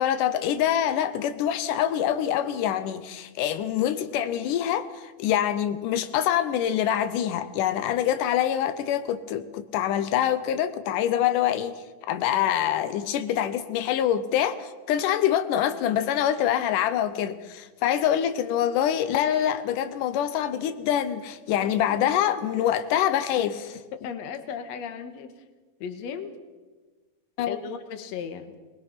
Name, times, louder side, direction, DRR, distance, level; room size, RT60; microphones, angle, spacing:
voice 1, 0.0-11.8 12.1-23.6 27.4-27.6, left 10 dB, 90° left, 11 dB, 2.4 m, -25 dB
voice 2, 21.5-22.0 22.4-22.5 23.0-23.1 23.9-25.3 25.8-26.4 27.5-28.5, left 7 dB, 65° left, 8 dB, 2.4 m, -36 dB
22.5 x 20.0 x 5.8 m, 1.3 s
omnidirectional pair, 3.6 m